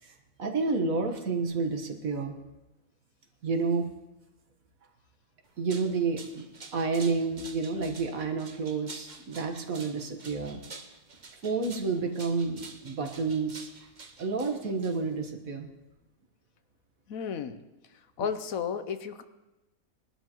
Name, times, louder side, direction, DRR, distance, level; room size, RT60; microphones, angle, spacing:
voice 1, 0.0-2.4 3.4-3.9 5.6-6.5 6.7-10.6 11.4-13.7 14.2-15.7, right 4 dB, 70° right, 4 dB, 1.8 m, -30 dB
sound 1, 5.5-15.3, right 4 dB, 35° right, 0.9 m, -48 dB
voice 2, 17.1-17.6 17.9-19.2, left 7 dB, 75° left, 10 dB, 1.2 m, -33 dB
21.0 x 12.0 x 3.0 m, 1.0 s
omnidirectional pair, 1.5 m